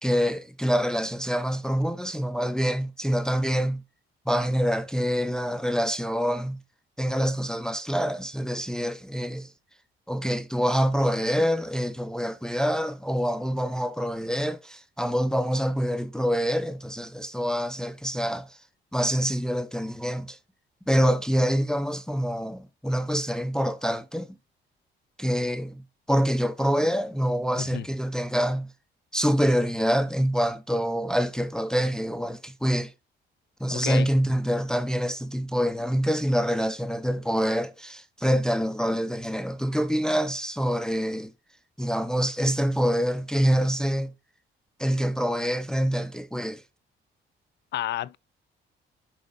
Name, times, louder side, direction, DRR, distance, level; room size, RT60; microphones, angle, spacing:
voice 1, 0.0-3.8 4.3-6.6 7.0-9.5 10.1-18.6 18.9-20.4 20.9-24.3 25.2-25.8 26.1-28.7 29.1-32.9 33.6-41.3 41.8-44.1 44.8-46.6, equal, 5° left, 0.7 m, -26 dB
voice 2, 33.7-34.1 47.7-48.2, left 13 dB, 60° left, 0.5 m, -31 dB
6.9 x 5.0 x 3.9 m
cardioid pair, 90°, 20 cm